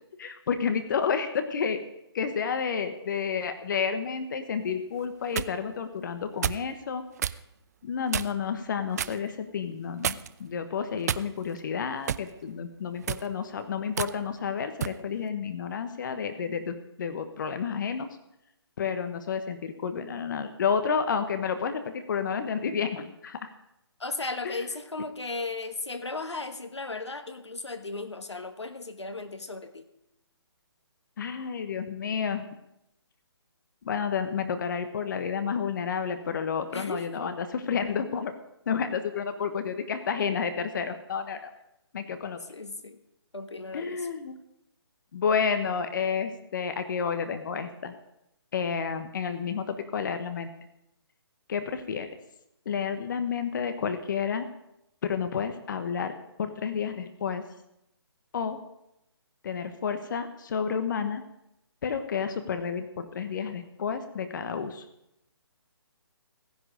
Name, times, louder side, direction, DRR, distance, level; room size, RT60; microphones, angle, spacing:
voice 1, 0.2-1.8 2.1-7.0 7.8-18.1 18.8-23.5 24.4-24.6 31.2-32.5 33.8-38.3 38.7-41.5 41.9-42.4 43.7-44.4 45.1-47.9 48.5-50.5 51.5-52.1 52.6-54.5 55.0-57.4 58.3-58.6 59.4-61.2 61.8-64.8, left 6 dB, 45° left, 9 dB, 1.2 m, -30 dB
sound 1, 5.0-5.5 6.4-6.7 7.2-7.4 8.1-8.5 9.0-9.2 10.0-10.4 11.1-11.6 12.1-12.3 13.0-13.3 14.0-14.1 14.8-15.0, right 9 dB, 40° right, 0.4 m, -30 dB
voice 2, 24.0-29.8 36.7-37.3 40.2-40.4 42.5-43.0 43.3-44.1, left 3 dB, 85° left, 9 dB, 1.5 m, -36 dB
16.0 x 10.5 x 5.1 m, 0.83 s
figure-of-eight pair, 145°, 14 cm